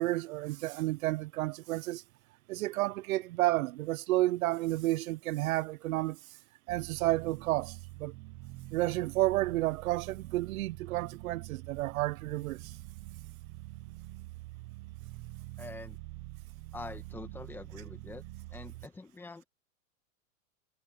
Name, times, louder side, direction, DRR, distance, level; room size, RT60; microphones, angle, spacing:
voice 1, 0.0-2.0 2.5-6.2 6.7-8.1 8.7-12.7, right 17 dB, 85° right, 0.6 m, -31 dB
sound 1, 6.7-18.9, right 19 dB, 20° right, 0.6 m, -46 dB
voice 2, 15.6-16.0 16.7-18.2 18.5-19.4, left 3 dB, 5° left, 1.3 m, -45 dB
supercardioid pair, 170°, 40 cm